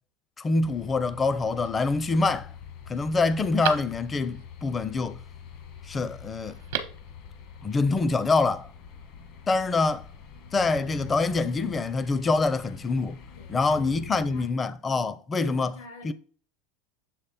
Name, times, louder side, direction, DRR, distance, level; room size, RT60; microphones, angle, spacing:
voice 1, 0.4-2.5 2.9-5.2 5.8-6.6 7.6-8.7 9.5-10.1 10.5-13.2 13.5-15.7 16.0-16.1, left 3 dB, 25° left, 0.5 m, -25 dB
sound 1, 0.6-14.5, left 7 dB, 60° left, 1.3 m, -45 dB
Telephone, 1.3-1.9 2.4-2.5 2.9-4.4 6.4-7.1 7.4-7.5, right 9 dB, 75° right, 0.8 m, -36 dB
voice 2, 13.3-14.5 15.0-16.1, left 4 dB, 80° left, 2.0 m, -48 dB
7.4 x 3.1 x 4.2 m
hypercardioid pair, 100°, 0 cm